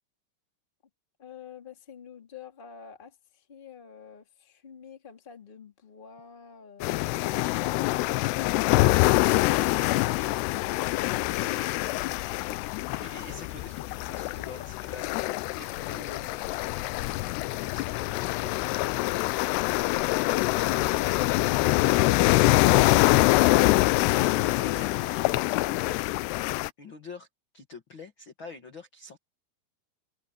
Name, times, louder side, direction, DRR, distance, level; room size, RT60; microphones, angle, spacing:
voice 1, 1.2-6.9 10.9-11.7, left 7 dB, 20° left, 1.6 m, -48 dB
sound 1, 6.8-26.7, left 19 dB, 90° left, 2.7 m, -25 dB
voice 2, 12.9-18.5 24.1-26.4 26.8-27.3 27.5-29.2, left 4 dB, 50° left, 1.6 m, -46 dB
omnidirectional pair, 4.7 m